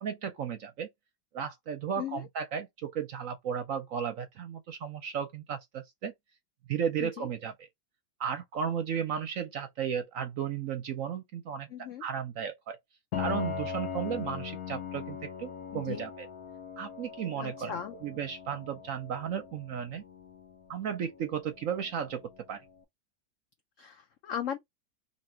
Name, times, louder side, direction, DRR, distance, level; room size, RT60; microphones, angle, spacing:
voice 1, 0.0-0.9 1.3-6.1 6.7-7.5 8.2-12.8 13.2-16.3 16.8-17.8 18.0-20.0 20.7-22.6, right 8 dB, 65° right, 0.8 m, -34 dB
voice 2, 2.0-2.3 7.0-7.3 11.7-12.0 15.7-16.0 17.4-17.9 23.8-24.6, left 9 dB, 80° left, 0.7 m, -37 dB
Piano, 13.1-22.7, left 7 dB, 60° left, 1.1 m, -40 dB
2.9 x 2.8 x 4.3 m
omnidirectional pair, 1.9 m